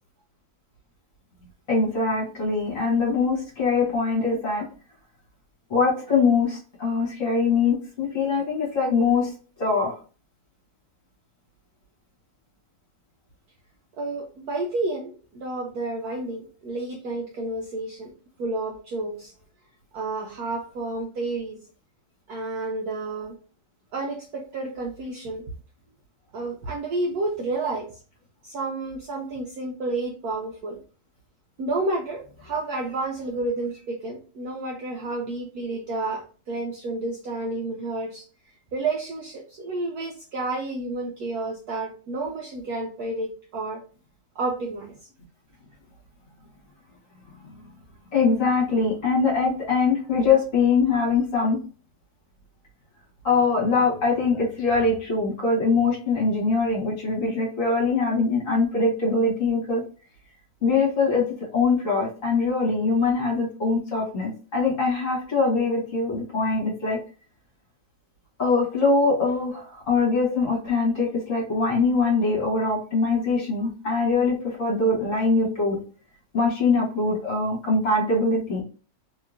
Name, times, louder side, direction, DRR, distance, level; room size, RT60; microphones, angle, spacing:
voice 1, 1.7-4.6 5.7-9.3 9.6-10.0 47.4-47.5 48.1-51.6 53.2-59.8 60.6-67.0 68.4-75.8 76.3-78.6, left 4 dB, 45° left, -3 dB, 1.4 m, -23 dB
voice 2, 14.0-18.1 18.4-19.3 19.9-21.6 22.3-23.4 23.9-25.4 26.3-27.9 28.4-30.8 31.6-38.2 38.7-43.8 44.4-45.0, right 2 dB, 70° right, 0 dB, 0.9 m, -30 dB
3.2 x 2.8 x 2.4 m, 0.38 s
omnidirectional pair, 2.1 m